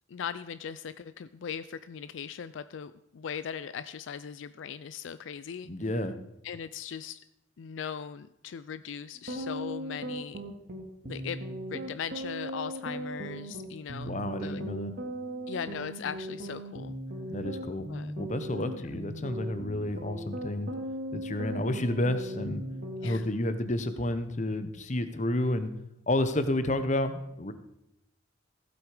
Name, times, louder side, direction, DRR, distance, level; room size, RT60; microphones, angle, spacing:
voice 1, 0.1-5.7 6.4-7.2 7.6-10.4 11.0-11.4 11.7-14.1 14.4-14.6 15.5-17.0 17.9-18.1 18.8-18.9 23.0-23.2, left 7 dB, 75° left, 14 dB, 0.4 m, -39 dB
voice 2, 5.7-6.1 14.0-14.9 17.3-17.9 18.2-20.7 21.1-22.6 23.0-25.7 26.1-27.5, left 1 dB, 40° left, 10 dB, 0.9 m, -30 dB
sound 1, 9.2-23.2, right 1 dB, 55° right, 2.1 m, -38 dB
15.5 x 8.1 x 4.9 m, 0.83 s
head